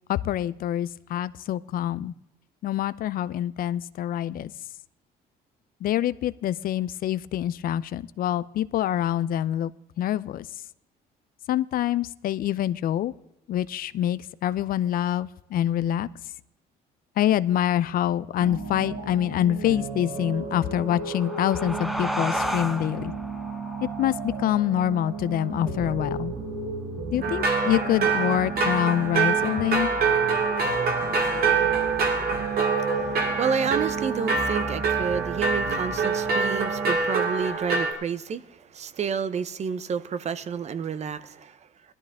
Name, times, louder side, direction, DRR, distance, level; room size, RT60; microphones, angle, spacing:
voice 1, 0.1-2.1 2.6-4.5 5.8-9.7 10.0-10.6 11.5-13.1 13.5-16.1 17.2-23.1 23.8-26.3 27.1-29.9, left 11 dB, 60° left, 18 dB, 0.5 m, -26 dB
sound 1, 18.4-36.9, right 5 dB, 80° right, 5.4 m, -33 dB
sound 2, 20.8-25.9, equal, ahead, 1.0 m, -34 dB
sound 3, 27.2-37.9, right 4 dB, 65° right, 2.2 m, -25 dB
voice 2, 32.8-41.6, right 6 dB, 40° right, 13 dB, 0.8 m, -30 dB
18.0 x 13.0 x 3.6 m, 0.89 s
cardioid pair, 110°, 17 cm